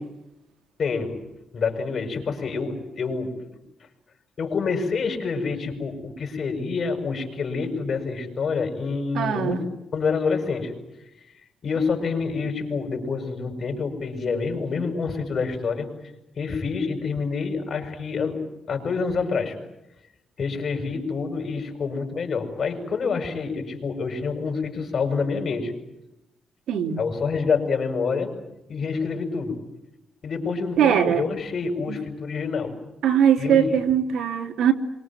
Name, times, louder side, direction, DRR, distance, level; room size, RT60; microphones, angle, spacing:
voice 1, 0.8-1.2 1.5-3.4 4.4-9.7 9.9-10.7 11.6-15.9 16.3-18.4 18.7-19.6 20.4-25.7 27.0-28.3 28.7-29.6 30.2-32.8 33.4-33.7, left 5 dB, 45° left, 5 dB, 7.4 m, -27 dB
voice 2, 9.1-9.6 26.7-27.0 30.8-31.2 33.0-34.7, right 9 dB, 70° right, 5 dB, 3.3 m, -20 dB
27.5 x 24.5 x 7.7 m, 0.91 s
cardioid pair, 100°, 0 cm